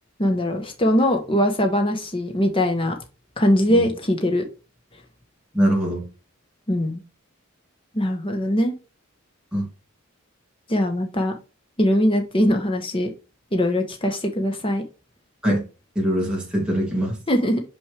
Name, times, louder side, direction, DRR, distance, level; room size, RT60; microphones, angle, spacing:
voice 1, 0.2-3.0 3.4-4.4 6.7-7.0 7.9-8.7 10.7-11.3 11.8-13.1 13.5-14.8 17.3-17.6, equal, 25° left, 1.0 m, -21 dB
voice 2, 5.5-6.0 9.5-9.7 15.4-15.7 15.9-17.2, equal, 5° right, 2.6 m, -22 dB
6.2 x 5.8 x 3.3 m
head